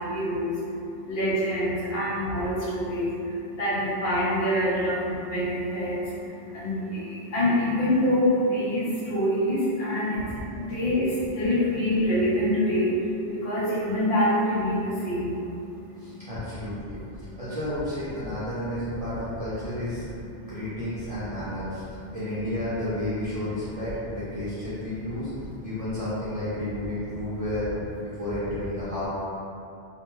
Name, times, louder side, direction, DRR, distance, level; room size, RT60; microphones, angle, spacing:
voice 1, 0.1-0.6 1.1-3.1 3.6-6.0 6.5-10.2 10.6-11.1 11.3-12.9 13.3-15.4, left 1 dB, 60° left, -8 dB, 0.9 m, -25 dB
voice 2, 16.0-17.0 17.4-20.1 20.5-25.3 25.6-27.7 28.0-29.1, left 1 dB, 50° right, -12 dB, 0.4 m, -32 dB
2.5 x 2.2 x 3.0 m, 2.7 s
omnidirectional pair, 1.2 m